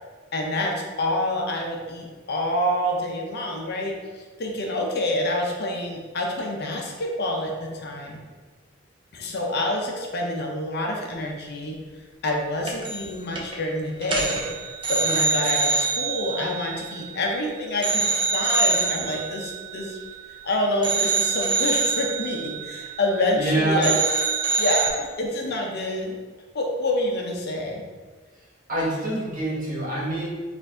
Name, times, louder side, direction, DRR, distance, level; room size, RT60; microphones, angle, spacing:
voice 1, 0.3-8.2 9.1-11.8 12.2-14.5 14.9-20.0 20.4-23.9 24.6-26.2 26.5-27.8, left 1 dB, 55° left, 0 dB, 0.7 m, -27 dB
sound 1, 12.7-13.1 13.4-13.6 14.0-17.4 17.8-20.4 20.8-23.5 23.8-24.9, right 4 dB, 25° right, 0.6 m, -25 dB
voice 2, 23.3-24.0 28.7-30.3, right 1 dB, 45° right, -5 dB, 1.3 m, -25 dB
4.5 x 2.6 x 3.7 m, 1.4 s
head